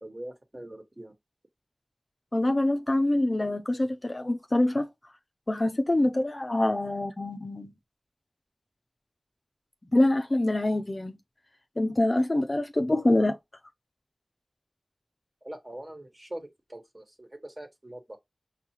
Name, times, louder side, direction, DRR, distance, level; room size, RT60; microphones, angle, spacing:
voice 1, 0.0-1.1 15.4-18.2, right 1 dB, 30° right, 1.3 m, -42 dB
voice 2, 2.3-4.9 5.5-7.7 9.9-11.1 11.8-13.4, left 1 dB, 40° left, 0.5 m, -25 dB
5.6 x 2.3 x 2.8 m
wide cardioid pair, 50°, 0 cm